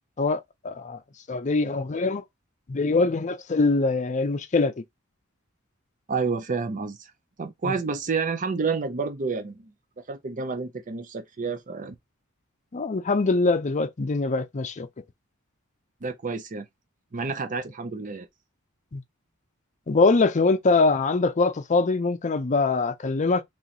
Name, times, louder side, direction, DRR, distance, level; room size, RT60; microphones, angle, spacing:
voice 1, 0.2-1.0 1.3-2.2 2.7-4.7 7.6-7.7 12.7-14.9 18.9-19.0 19.9-23.4, left 3 dB, 35° left, 0.5 m, -23 dB
voice 2, 6.1-7.1 7.4-9.7 10.1-11.9 16.0-16.7 17.1-18.3, right 4 dB, 40° right, 0.6 m, -29 dB
3.1 x 2.9 x 4.0 m
head